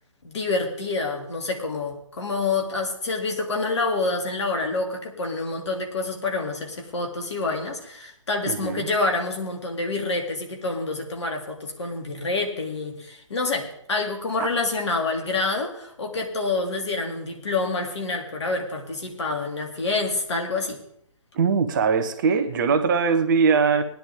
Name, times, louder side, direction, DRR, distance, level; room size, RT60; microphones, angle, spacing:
voice 1, 0.2-20.8, left 3 dB, 60° left, 3 dB, 2.8 m, -27 dB
voice 2, 8.4-8.9 21.3-23.8, right 5 dB, 40° right, 9 dB, 1.1 m, -21 dB
19.0 x 10.5 x 3.6 m, 0.70 s
figure-of-eight pair, 130°, 17 cm